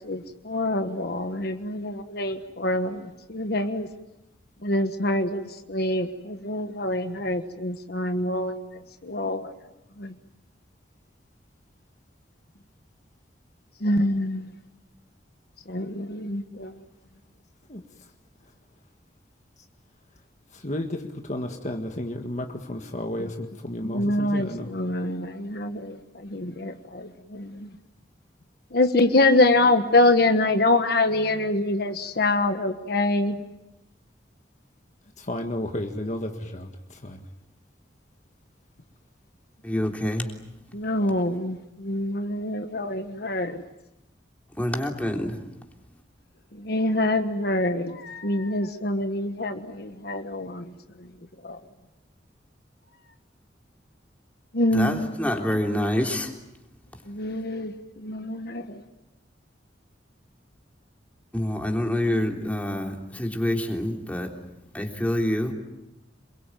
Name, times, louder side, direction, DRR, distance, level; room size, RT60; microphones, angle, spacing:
voice 1, 0.0-3.9 4.6-9.5 10.0-10.2 13.8-14.6 15.6-16.7 23.2-23.3 23.8-27.8 28.7-33.4 40.7-43.6 46.5-51.6 54.5-55.1 57.0-58.8, left 2 dB, 60° left, 7 dB, 1.3 m, -25 dB
voice 2, 20.5-24.7 35.2-37.3, left 1 dB, 40° left, 4 dB, 1.7 m, -32 dB
voice 3, 39.6-40.3 44.6-45.4 54.7-56.3 61.3-64.3 64.7-65.5, left 1 dB, 10° left, 2 dB, 3.4 m, -26 dB
27.5 x 22.5 x 9.2 m, 0.94 s
head